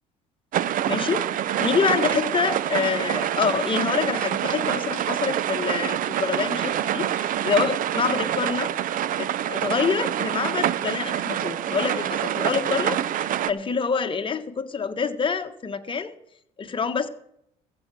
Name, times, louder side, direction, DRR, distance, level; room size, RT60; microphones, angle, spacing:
sound 1, 0.5-13.5, right 11 dB, 55° right, 0.7 m, -26 dB
voice 1, 0.9-8.7 9.2-16.2 16.6-17.1, left 5 dB, 30° left, 8 dB, 1.3 m, -26 dB
15.0 x 8.0 x 6.3 m, 0.75 s
supercardioid pair, 85°, 17 cm